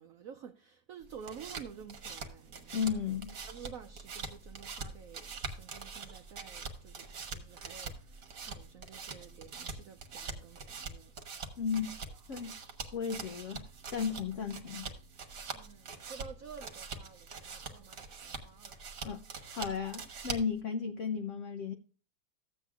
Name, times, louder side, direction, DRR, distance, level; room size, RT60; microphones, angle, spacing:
voice 1, 0.0-3.0 3.5-11.1 12.1-12.4 15.5-18.8, right 7 dB, 75° right, 0.7 m, -51 dB
sound 1, 1.0-20.6, right 4 dB, 50° right, 1.5 m, -44 dB
voice 2, 2.7-3.4 11.6-12.0 12.3-12.6 12.9-14.9 19.0-21.7, left 6 dB, 85° left, 0.6 m, -35 dB
sound 2, 2.8-10.4, right 3 dB, 20° left, 2.7 m, -57 dB
14.5 x 8.2 x 2.4 m
omnidirectional pair, 2.1 m